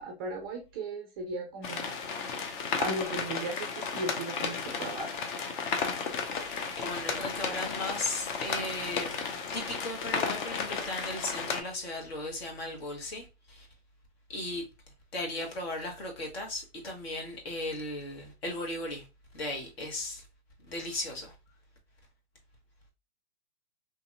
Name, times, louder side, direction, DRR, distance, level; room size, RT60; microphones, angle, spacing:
voice 1, 0.0-1.9 2.8-5.1, right 2 dB, 25° right, 0.3 m, -36 dB
sound 1, 1.6-11.6, left 5 dB, 45° left, 0.7 m, -34 dB
voice 2, 6.3-13.2 14.3-14.6 15.1-19.0 19.3-20.2 20.7-21.3, left 2 dB, 60° left, 1.4 m, -36 dB
2.9 x 2.6 x 2.3 m
hypercardioid pair, 130°, 34 cm